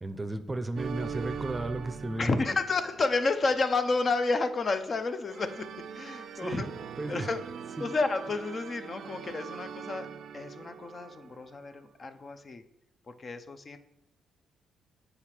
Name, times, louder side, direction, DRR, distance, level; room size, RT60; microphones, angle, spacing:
voice 1, 0.0-2.4 6.4-6.6 7.0-7.3 7.8-7.9, right 2 dB, 20° right, 9 dB, 0.6 m, -34 dB
sound 1, 0.8-3.4 5.3-11.5, right 7 dB, 60° right, 0.4 m, -42 dB
voice 2, 2.2-5.7 5.9-6.7 7.1-7.4 7.8-10.1 10.3-12.6 13.1-13.8, left 3 dB, 40° left, 9 dB, 0.7 m, -30 dB
8.0 x 4.9 x 4.5 m, 0.84 s
cardioid pair, 90°, 0 cm